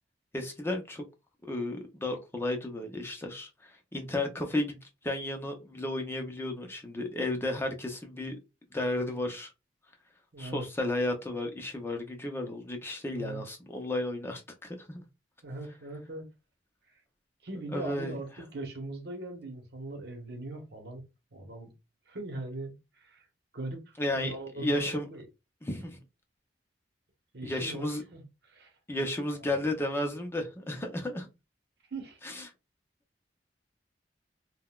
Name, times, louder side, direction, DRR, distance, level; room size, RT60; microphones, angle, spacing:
voice 1, 0.3-1.0 1.5-4.8 5.0-8.3 8.7-9.5 10.4-15.0 17.7-18.1 24.0-25.1 25.6-26.0 27.4-28.0 28.9-31.3 32.2-32.5, left 1 dB, 15° left, 0.5 m, -33 dB
voice 2, 10.3-10.6 13.1-13.4 15.4-16.2 17.4-21.0 21.3-21.7 22.1-23.2 23.5-25.2 27.3-28.2 28.5-28.7 31.9-32.2, right 2 dB, 65° right, 1.0 m, -40 dB
3.8 x 2.2 x 2.3 m
head